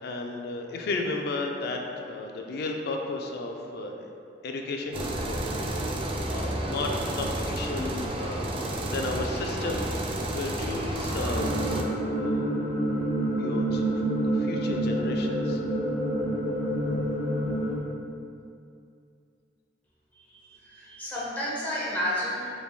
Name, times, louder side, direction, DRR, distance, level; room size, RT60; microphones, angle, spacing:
voice 1, 0.0-4.1 4.4-5.4 6.0-6.9 7.2-8.5 8.9-12.5 13.4-13.8 14.4-15.6, left 3 dB, 60° left, 2 dB, 0.4 m, -34 dB
sound 1, 4.9-11.8, right 1 dB, 30° right, 0.3 m, -31 dB
sound 2, 11.3-17.8, right 1 dB, 40° left, 0.9 m, -28 dB
voice 2, 20.1-22.5, equal, 10° left, -7 dB, 0.8 m, -32 dB
4.8 x 3.4 x 2.2 m, 2.4 s
head